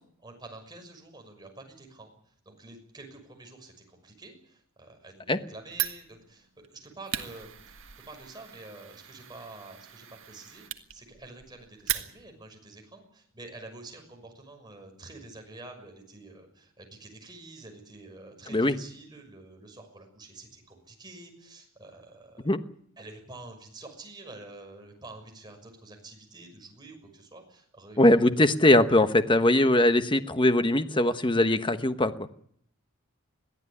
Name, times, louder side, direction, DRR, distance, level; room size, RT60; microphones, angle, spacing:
voice 1, 0.2-2.1 2.4-7.6 8.1-22.5 23.0-28.1, right 2 dB, 20° right, 3 dB, 6.2 m, -48 dB
Fire, 5.7-12.5, right 12 dB, 60° right, 1.7 m, -38 dB
voice 2, 28.0-32.1, left 1 dB, 20° left, 10 dB, 1.1 m, -21 dB
22.0 x 15.0 x 9.9 m, 0.67 s
head